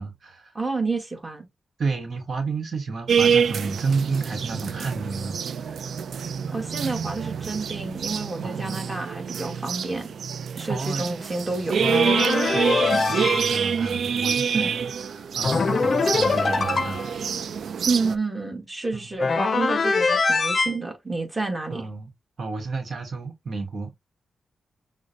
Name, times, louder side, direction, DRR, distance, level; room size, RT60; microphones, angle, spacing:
voice 1, 0.0-0.5 1.8-5.4 5.7-5.8 8.4-8.8 10.7-11.1 12.5-17.1 18.9-19.1 21.7-22.1 22.4-23.9, right 4 dB, 60° right, 1.1 m, -31 dB
voice 2, 0.5-1.5 6.5-10.1 10.6-11.9 14.5-14.7 17.8-21.9, right 3 dB, 20° right, 1.5 m, -29 dB
sound 1, 3.1-18.2, right 7 dB, 75° right, 0.3 m, -27 dB
sound 2, 11.8-13.6 15.4-17.1 19.2-20.7, left 4 dB, 50° left, 0.5 m, -23 dB
6.2 x 2.1 x 2.6 m
cardioid pair, 75°, 0 cm